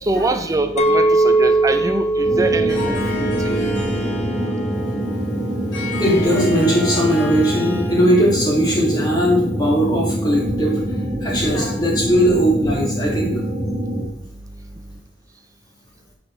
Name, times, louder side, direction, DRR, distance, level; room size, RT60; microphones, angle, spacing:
voice 1, 0.0-3.3 3.6-3.9, right 2 dB, 15° right, 7 dB, 0.5 m, -24 dB
Chink clink, 0.8-5.1 5.6-6.0, right 2 dB, 35° left, 0.6 m, -20 dB
sound 1, 2.2-14.0, right 1 dB, ahead, 2.3 m, -25 dB
Harp, 2.7-8.2, equal, 70° left, 1.5 m, -29 dB
voice 2, 6.0-10.8 11.2-13.3, equal, 20° left, -4 dB, 2.0 m, -19 dB
8.6 x 4.5 x 3.2 m, 0.77 s
head